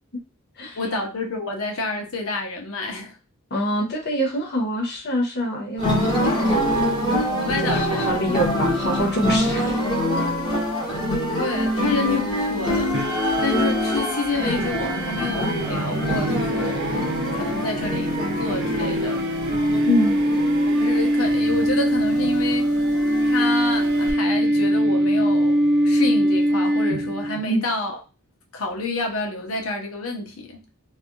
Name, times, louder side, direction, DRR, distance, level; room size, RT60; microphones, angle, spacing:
voice 1, 0.8-3.1 7.4-8.5 11.4-13.0 13.4-16.9 17.4-19.2 20.6-22.7 23.3-28.0 28.5-30.6, left 2 dB, 80° left, 0.9 m, -29 dB
voice 2, 3.5-6.0 7.1-9.8 19.8-20.2 27.5-27.6, equal, 50° left, 1.1 m, -25 dB
sound 1, 5.8-24.1, equal, 20° left, 1.3 m, -25 dB
sound 2, 12.9-27.4, right 1 dB, 55° right, 0.5 m, -23 dB
3.3 x 2.6 x 2.2 m
head